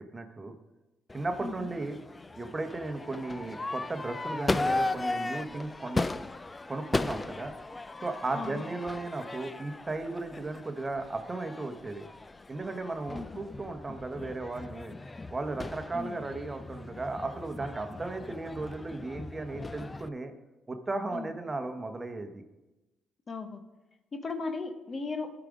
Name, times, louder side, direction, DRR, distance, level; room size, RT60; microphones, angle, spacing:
voice 1, 0.1-0.5 1.1-2.0 2.4-6.1 6.7-7.5 8.0-12.0 12.5-14.9 15.3-20.3 20.7-22.4, right 2 dB, 25° right, 6 dB, 1.0 m, -35 dB
Crowd / Fireworks, 1.1-20.1, left 2 dB, 20° left, 0.3 m, -37 dB
voice 2, 23.3-23.6 24.1-25.3, left 3 dB, 40° left, 7 dB, 0.9 m, -36 dB
13.5 x 4.9 x 5.0 m, 1.0 s
cardioid pair, 90°, 0 cm